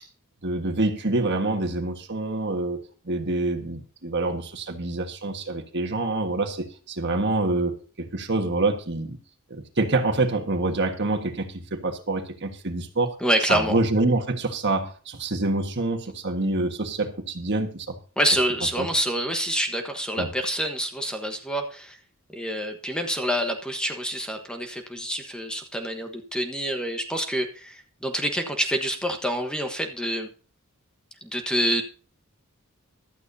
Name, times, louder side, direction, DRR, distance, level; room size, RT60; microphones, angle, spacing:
voice 1, 0.4-9.2 9.5-13.2 13.5-18.0 18.8-18.9 20.2-20.3, right 2 dB, 55° right, 5 dB, 1.6 m, -26 dB
voice 2, 13.2-13.7 18.2-22.0 22.3-30.3 31.2-31.8, equal, 5° left, 4 dB, 1.2 m, -27 dB
15.0 x 12.0 x 2.7 m, 0.38 s
head